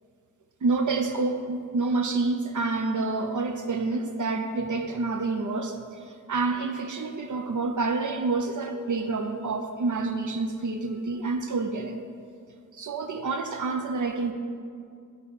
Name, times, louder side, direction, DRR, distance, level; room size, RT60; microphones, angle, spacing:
voice 1, 0.6-12.0 12.7-14.3, right 3 dB, 70° right, 6 dB, 0.5 m, -28 dB
8.1 x 4.1 x 6.9 m, 2.3 s
wide cardioid pair, 55°, 31 cm